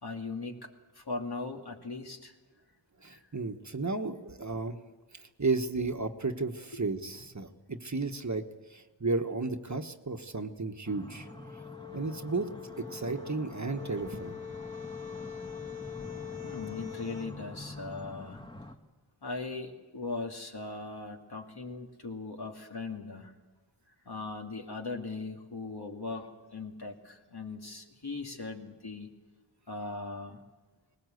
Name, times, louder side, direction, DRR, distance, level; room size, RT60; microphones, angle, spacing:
voice 1, 0.0-2.3 3.1-3.3 6.7-6.8 16.4-18.4 19.2-23.3 24.0-29.1 29.7-30.4, left 3 dB, 55° left, 2 dB, 2.6 m, -39 dB
voice 2, 3.0-4.8 5.1-8.4 8.7-11.3 11.9-12.5 12.8-14.3, right 3 dB, 40° right, 6 dB, 1.3 m, -33 dB
sound 1, 10.8-18.7, left 1 dB, 10° left, 1.9 m, -46 dB
sound 2, 11.2-17.3, left 9 dB, 25° left, 3.9 m, -43 dB
19.5 x 19.0 x 8.0 m, 1.2 s
wide cardioid pair, 50°, 45 cm